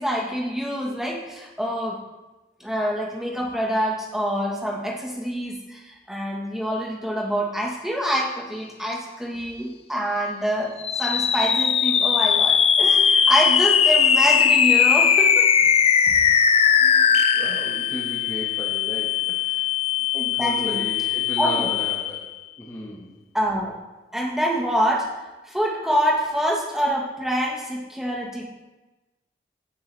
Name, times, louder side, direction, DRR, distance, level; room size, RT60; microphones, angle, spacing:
voice 1, 0.0-2.0 2.6-15.5 16.1-16.2 20.1-20.8 21.4-21.7 23.3-23.8 24.1-25.1 25.5-28.4, equal, 5° right, -2 dB, 1.4 m, -26 dB
sound 1, 10.8-22.3, left 7 dB, 35° left, 0.4 m, -19 dB
voice 2, 16.8-19.7 20.2-22.2 22.6-23.1, equal, 20° left, -3 dB, 1.5 m, -36 dB
16.0 x 6.8 x 3.4 m, 1.1 s
head